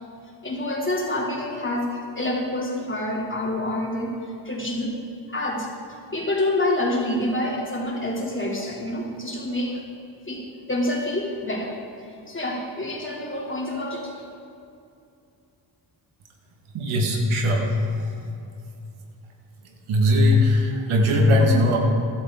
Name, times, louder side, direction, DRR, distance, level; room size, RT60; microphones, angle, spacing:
voice 1, 0.4-4.1 4.4-4.9 5.3-5.7 6.1-9.8 10.3-11.7 12.3-14.1, left 1 dB, 25° left, -2 dB, 3.0 m, -27 dB
voice 2, 16.7-18.1 19.9-21.8, left 1 dB, 80° right, 1 dB, 1.8 m, -19 dB
14.0 x 12.0 x 3.8 m, 2.5 s
supercardioid pair, 55°, 48 cm